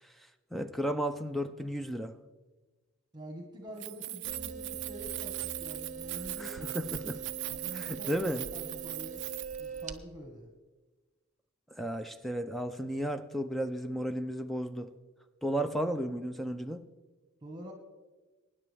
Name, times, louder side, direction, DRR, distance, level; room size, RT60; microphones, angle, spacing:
voice 1, 0.5-2.1 6.4-7.2 7.7-8.4 11.8-14.9 15.4-16.8, equal, ahead, 0.5 m, -33 dB
voice 2, 3.1-6.7 7.5-9.3 9.6-10.5 15.4-15.7 17.4-17.7, right 1 dB, 20° right, 1.5 m, -47 dB
Keys jangling, 3.7-9.8, right 19 dB, 60° right, 0.3 m, -40 dB
sound 1, 4.3-10.0, right 5 dB, 35° right, 0.8 m, -43 dB
23.5 x 10.0 x 3.4 m
head